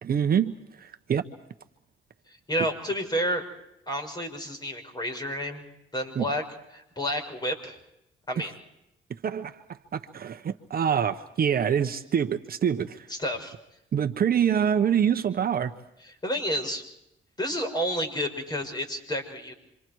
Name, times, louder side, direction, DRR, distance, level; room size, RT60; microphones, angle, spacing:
voice 1, 0.0-1.3 6.2-6.3 9.2-13.1 13.9-15.7, right 8 dB, 50° right, 7 dB, 1.2 m, -26 dB
voice 2, 2.5-3.4 3.9-5.7 5.9-6.4 6.7-7.8 8.3-8.5 13.1-13.5 16.2-16.8 17.4-19.5, equal, 20° left, 4 dB, 6.2 m, -30 dB
28.0 x 25.5 x 4.7 m, 0.83 s
cardioid pair, 90°, 20 cm